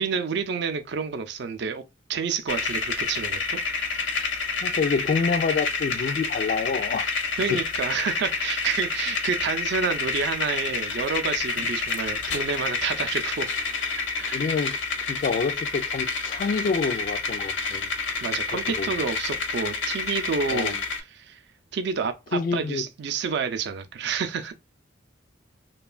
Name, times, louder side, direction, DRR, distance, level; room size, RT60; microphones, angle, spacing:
voice 1, 0.0-1.8 2.1-3.6 7.4-13.5 14.0-14.5 18.2-21.4 21.7-24.5, right 5 dB, 65° right, 0.4 m, -29 dB
sound 1, 2.5-21.0, left 4 dB, 75° left, 0.7 m, -29 dB
voice 2, 4.6-7.1 7.5-7.6 14.3-14.8 15.1-17.9 18.8-18.9 20.5-20.8 22.3-22.8, left 5 dB, 50° left, 0.3 m, -27 dB
3.0 x 2.3 x 2.3 m
head